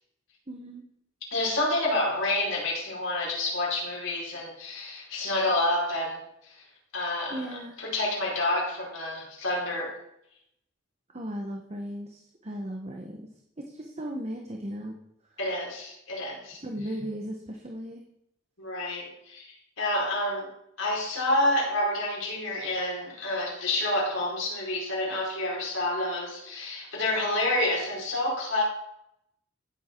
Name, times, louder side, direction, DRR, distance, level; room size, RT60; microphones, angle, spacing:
voice 1, 0.5-0.8 7.3-7.7 11.1-13.3 13.6-14.9 16.6-18.0, equal, 35° right, 2 dB, 1.1 m, -36 dB
voice 2, 1.3-6.5 6.9-7.5 7.8-10.0 15.4-16.6 18.6-20.5 20.8-28.6, left 1 dB, 85° left, -3 dB, 4.7 m, -28 dB
14.0 x 7.4 x 4.5 m, 0.76 s
head